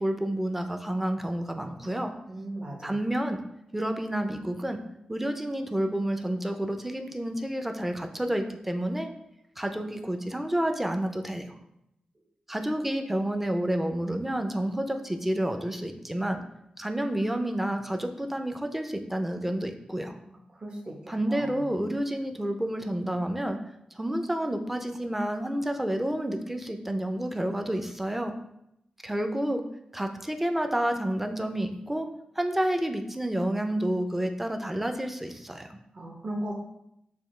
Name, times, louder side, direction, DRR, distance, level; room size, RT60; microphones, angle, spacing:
voice 1, 0.0-2.1 2.8-3.4 3.7-4.8 5.1-9.1 9.6-11.5 12.5-16.4 16.8-20.2 21.1-23.6 24.0-28.3 29.0-29.6 29.9-32.1 32.4-35.8, right 1 dB, 10° right, 5 dB, 0.5 m, -29 dB
voice 2, 2.3-2.9 20.3-21.0 21.3-21.7 35.9-36.5, right 1 dB, 40° right, -1 dB, 0.9 m, -37 dB
6.9 x 2.3 x 3.2 m, 0.81 s
cardioid pair, 80°, 2 cm